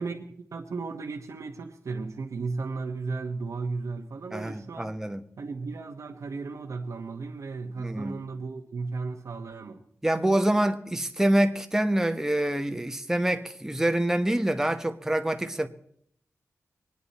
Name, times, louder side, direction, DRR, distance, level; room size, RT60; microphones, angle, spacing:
voice 1, 0.0-4.9 5.4-9.8, right 4 dB, 70° right, 1.1 m, -35 dB
voice 2, 4.3-5.2 7.8-8.1 10.0-15.7, right 1 dB, 10° right, 1.0 m, -26 dB
24.0 x 9.6 x 4.2 m
wide cardioid pair, 130°, 6 cm